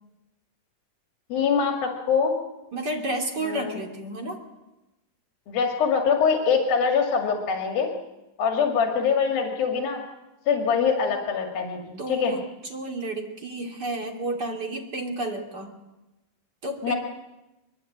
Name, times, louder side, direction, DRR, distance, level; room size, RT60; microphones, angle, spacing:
voice 1, 1.3-2.4 3.4-3.8 5.5-7.9 8.4-10.0 10.5-12.4 16.8-17.0, left 6 dB, 90° left, 3 dB, 3.9 m, -23 dB
voice 2, 2.7-4.4 12.0-15.8 16.6-16.9, right 1 dB, 30° right, 4 dB, 2.9 m, -31 dB
23.5 x 22.5 x 8.7 m, 1.0 s
omnidirectional pair, 4.0 m